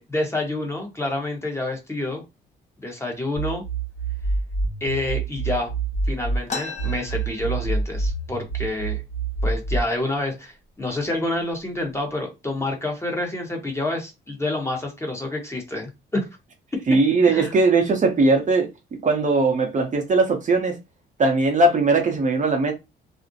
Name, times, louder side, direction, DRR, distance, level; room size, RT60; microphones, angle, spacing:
voice 1, 0.0-2.2 2.8-3.6 4.8-5.7 6.1-9.0 9.4-16.3 17.2-17.5, left 2 dB, 15° left, 0.9 m, -28 dB
sound 1, 3.4-6.4 6.8-9.8, right 3 dB, 70° left, 1.1 m, -26 dB
sound 2, 6.5-8.1 8.4-8.5 8.8-9.4 10.0-10.1 10.9-11.0 11.5-12.0, left 4 dB, 35° left, 0.5 m, -35 dB
voice 2, 16.9-18.7 19.0-20.8 21.2-22.7, right 3 dB, 40° right, 0.6 m, -19 dB
2.4 x 2.0 x 2.6 m
cardioid pair, 90°, 20 cm